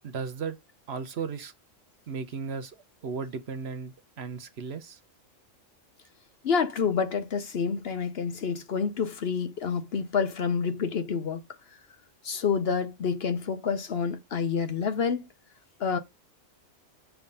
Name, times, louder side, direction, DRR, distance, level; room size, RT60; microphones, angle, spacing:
voice 1, 0.0-0.6 0.9-1.5 2.1-2.8 3.0-5.0, right 5 dB, 60° right, 1.0 m, -35 dB
voice 2, 6.4-11.4 12.2-15.2 15.8-16.0, left 6 dB, 55° left, 0.9 m, -28 dB
7.2 x 3.3 x 5.3 m
omnidirectional pair, 1.3 m